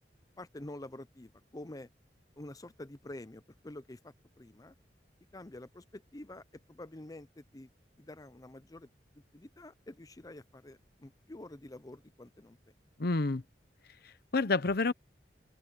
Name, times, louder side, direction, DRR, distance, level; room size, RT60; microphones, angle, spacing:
voice 1, 0.4-1.9 2.4-4.7 5.3-7.7 8.0-8.9 9.3-12.6, left 1 dB, 20° left, 0.6 m, -48 dB
voice 2, 13.0-13.4 14.0-14.9, left 3 dB, 60° left, 0.8 m, -29 dB
open air
head